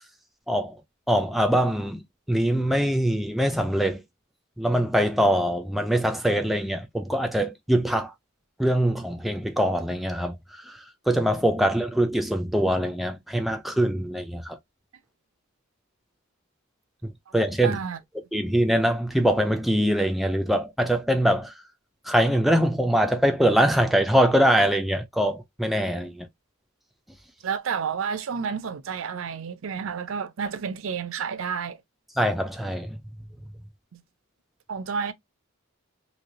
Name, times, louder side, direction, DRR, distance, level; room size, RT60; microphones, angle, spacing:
voice 1, 1.1-2.0 2.3-4.0 4.6-8.1 8.6-10.4 10.7-10.8 11.1-14.6 17.0-17.8 18.3-21.5 22.1-26.3 32.2-33.0, equal, ahead, 0.3 m, -23 dB
voice 2, 17.6-18.0 27.4-31.8 33.9-34.0 34.7-35.1, right 6 dB, 65° right, 0.5 m, -30 dB
3.1 x 2.8 x 2.6 m
head